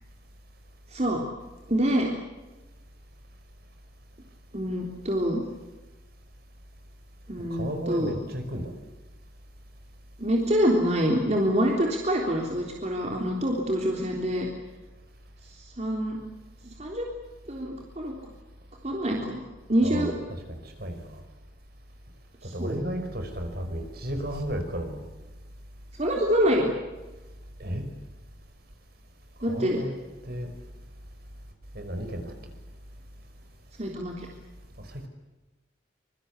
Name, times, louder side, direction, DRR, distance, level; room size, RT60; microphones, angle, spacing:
voice 1, 0.9-1.2 1.7-2.1 4.5-5.4 7.3-8.1 10.2-14.5 15.4-16.2 16.6-17.1 17.5-18.1 18.8-19.4 19.7-20.1 22.4-22.8 26.0-26.7 29.4-29.8 33.8-34.3, equal, 35° right, 0 dB, 3.6 m, -26 dB
voice 2, 7.5-8.7 19.8-21.2 22.4-25.0 27.6-27.9 29.5-29.9 30.2-30.5 31.7-32.3 34.8-35.1, equal, 55° right, 6 dB, 5.3 m, -33 dB
26.0 x 24.5 x 8.3 m, 1.1 s
head